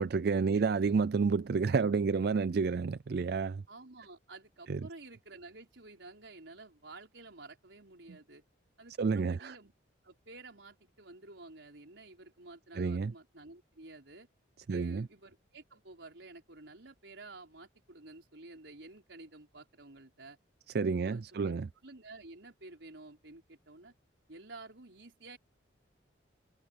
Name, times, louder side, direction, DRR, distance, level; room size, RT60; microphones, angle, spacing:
voice 1, 0.0-3.6 4.7-4.9 9.0-9.5 12.8-13.1 14.7-15.1 20.7-21.7, right 5 dB, 55° right, 0.4 m, -30 dB
voice 2, 3.7-8.4 8.8-9.7 10.0-14.3 14.7-20.4 21.0-23.9 24.3-25.4, right 2 dB, 75° right, 4.4 m, -51 dB
head